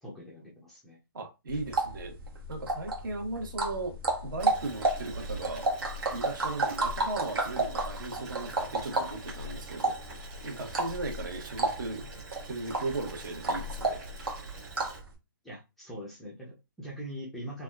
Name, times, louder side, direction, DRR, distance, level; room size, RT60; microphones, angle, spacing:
voice 1, 0.0-1.0 15.4-17.6, equal, ahead, -6 dB, 0.3 m, -42 dB
voice 2, 1.1-2.2 2.5-4.0 4.2-5.7 6.1-10.2 10.4-12.1 12.5-14.0, right 2 dB, 60° right, 4 dB, 1.1 m, -37 dB
sound 1, 1.5-15.1, right 2 dB, 85° right, 1.1 m, -32 dB
Boiling, 4.4-15.0, right 3 dB, 20° right, 1.2 m, -45 dB
3.4 x 2.3 x 2.3 m, 0.25 s
hypercardioid pair, 170°, 12 cm